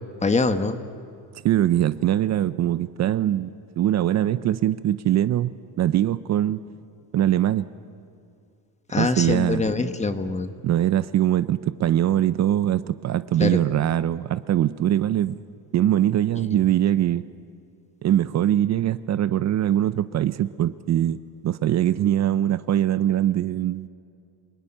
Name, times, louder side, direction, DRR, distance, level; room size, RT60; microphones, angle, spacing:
voice 1, 0.2-0.8 8.9-10.5 13.4-13.6, left 3 dB, 20° left, 9 dB, 1.2 m, -23 dB
voice 2, 1.4-6.6 7.1-7.6 9.0-9.7 10.6-15.4 15.7-17.2 18.0-23.9, right 11 dB, 50° right, 14 dB, 0.6 m, -22 dB
28.0 x 20.0 x 10.0 m, 2.3 s
cardioid pair, 150°, 36 cm